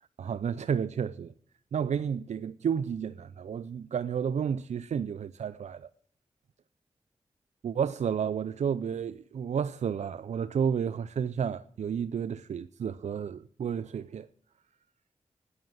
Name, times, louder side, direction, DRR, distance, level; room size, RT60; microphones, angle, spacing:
voice 1, 0.2-1.3 1.7-5.9 7.6-14.3, right 7 dB, 80° right, 0.5 m, -31 dB
13.0 x 9.9 x 9.1 m
cardioid pair, 40°, 12 cm